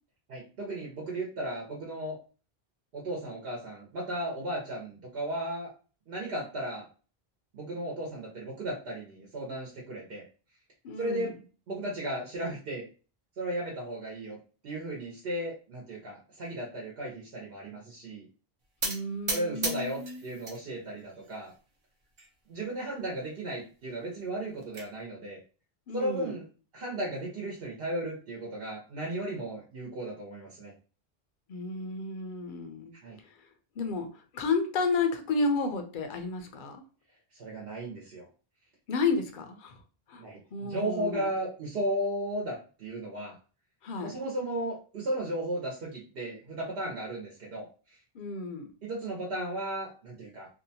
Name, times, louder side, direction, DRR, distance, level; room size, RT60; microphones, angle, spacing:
voice 1, 0.3-2.2 2.9-5.7 6.1-6.9 7.5-10.2 11.0-11.3 11.7-12.8 13.4-14.4 14.6-18.2 19.3-21.5 22.5-25.4 25.9-26.4 26.7-30.7 33.0-33.2 37.3-38.2 40.2-43.4 44.0-47.7 48.8-50.5, right 1 dB, 70° right, -2 dB, 0.9 m, -35 dB
voice 2, 10.8-11.3 18.8-20.2 25.9-26.3 31.5-32.9 33.8-36.8 38.9-39.8 40.1-40.2 40.5-41.3 43.8-44.1 48.1-48.7, left 3 dB, 60° left, 6 dB, 0.6 m, -32 dB
sound 1, 18.8-20.6 21.0-21.6 22.2-22.3 22.6-22.7 23.0-23.1 24.2-24.9, right 2 dB, 35° right, 0.5 m, -35 dB
2.7 x 2.1 x 2.7 m, 0.36 s
omnidirectional pair, 1.0 m